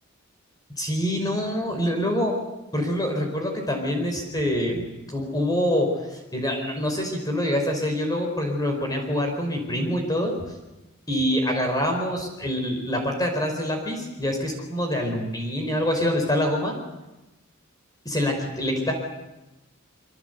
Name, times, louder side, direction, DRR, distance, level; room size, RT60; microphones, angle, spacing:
voice 1, 0.8-2.3 2.7-10.3 11.1-16.7 18.0-18.9, equal, 20° left, 3 dB, 5.0 m, -25 dB
26.0 x 25.0 x 8.2 m, 1.0 s
head